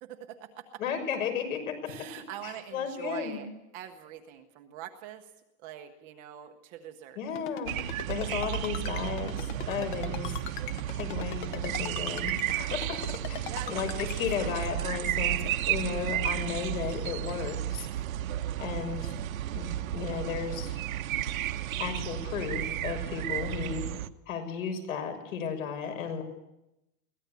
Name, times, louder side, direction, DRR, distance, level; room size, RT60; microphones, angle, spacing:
voice 1, 0.0-0.8 1.9-3.5 3.7-5.3 5.6-7.2 13.5-14.6, right 10 dB, 20° right, 5 dB, 0.8 m, -44 dB
voice 2, 0.8-1.9 2.4-3.4 7.2-10.4 10.9-17.9 18.6-19.1 19.5-20.7 21.8-23.8 24.3-26.2, left 7 dB, 65° left, 6 dB, 6.3 m, -34 dB
Ringtone, 7.4-14.2, left 9 dB, 35° left, 1.1 m, -39 dB
sound 1, 7.7-24.1, right 12 dB, 70° right, 1.2 m, -33 dB
23.0 x 17.5 x 8.3 m, 0.91 s
supercardioid pair, 180°, 43 cm